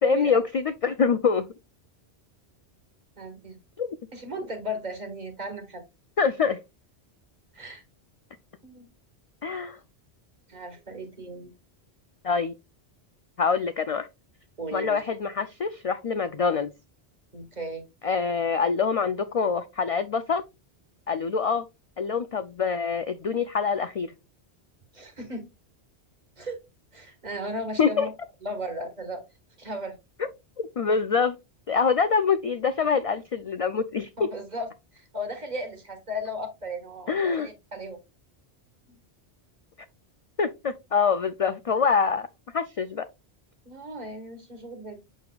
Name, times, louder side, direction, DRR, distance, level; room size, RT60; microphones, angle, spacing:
voice 1, 0.0-1.5 3.8-4.0 6.2-6.6 9.4-9.8 12.2-12.5 13.4-14.1 14.7-16.7 18.0-20.4 21.1-21.7 22.0-24.1 27.8-28.1 30.8-31.4 31.7-34.1 37.1-37.5 40.4-42.3 42.5-43.0, left 5 dB, 60° left, 11 dB, 0.3 m, -25 dB
voice 2, 3.2-3.6 4.1-5.8 7.5-7.8 8.6-8.9 10.5-11.5 14.6-15.0 17.3-17.9 24.9-25.5 26.4-26.6 26.9-28.1 28.4-29.2 29.6-30.0 31.7-31.8 34.2-38.0 38.9-39.0 43.6-45.0, equal, 40° right, 5 dB, 1.6 m, -36 dB
6.8 x 6.3 x 2.3 m, 0.23 s
omnidirectional pair, 1.1 m